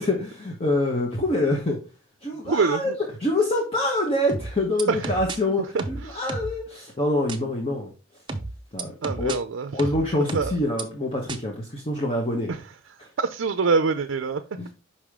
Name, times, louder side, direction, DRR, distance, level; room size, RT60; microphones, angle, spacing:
voice 1, 0.0-1.8 2.2-2.9 3.2-7.9 8.7-9.4 9.7-12.6 13.0-13.1 14.6-14.7, left 1 dB, 30° left, 0 dB, 1.1 m, -25 dB
voice 2, 2.5-2.9 4.9-5.1 5.7-5.8 6.1-6.2 9.0-9.7 10.3-10.5 12.5-12.6 13.2-14.4, right 4 dB, 65° right, 8 dB, 0.5 m, -24 dB
sound 1, 4.3-5.4 5.8-6.6 7.3-7.4 8.3-9.4 9.8-10.8 11.3-11.4, right 3 dB, 25° right, 0.7 m, -32 dB
5.7 x 4.9 x 3.6 m, 0.31 s
head